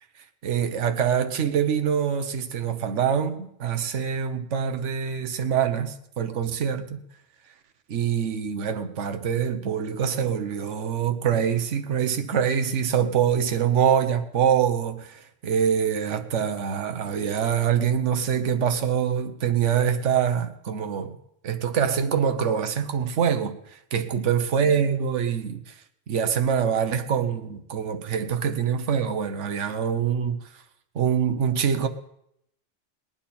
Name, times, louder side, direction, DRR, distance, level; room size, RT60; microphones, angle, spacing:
voice 1, 0.4-7.0 7.9-21.1 21.4-25.7 26.1-30.4 30.9-31.9, right 8 dB, 70° right, 8 dB, 1.3 m, -25 dB
20.5 x 10.0 x 4.3 m, 0.78 s
omnidirectional pair, 1.3 m